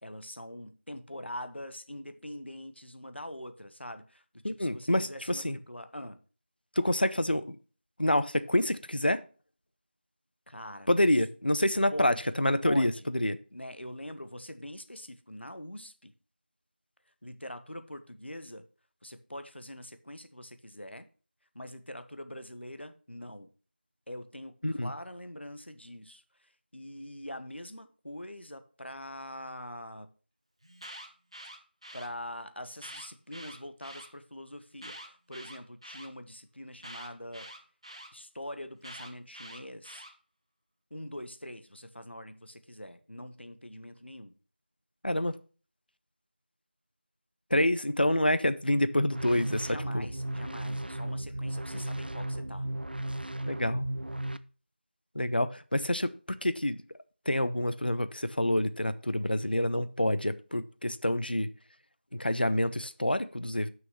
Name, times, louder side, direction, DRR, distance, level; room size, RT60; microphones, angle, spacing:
voice 1, 0.0-6.2 10.5-10.9 11.9-12.3 12.6-13.1 13.5-16.1 17.2-18.7 19.0-21.1 21.5-23.5 24.1-30.1 31.9-37.5 38.1-40.0 40.9-44.4 49.6-52.7, left 1 dB, 80° left, 1.2 m, -43 dB
voice 2, 4.4-5.6 6.8-7.6 8.0-9.2 10.9-13.4 24.6-24.9 45.0-45.4 47.5-50.1 51.7-51.8 53.5-53.9 55.1-56.8 57.3-61.5 62.1-63.7, left 1 dB, 55° left, 0.7 m, -27 dB
Alarm, 30.6-32.1 32.7-34.1 34.7-36.1 36.8-38.1 38.8-40.1, right 1 dB, 30° right, 1.1 m, -46 dB
sound 1, 49.1-54.4, right 1 dB, 60° right, 0.5 m, -35 dB
6.3 x 6.3 x 6.8 m
figure-of-eight pair, 175°, 6 cm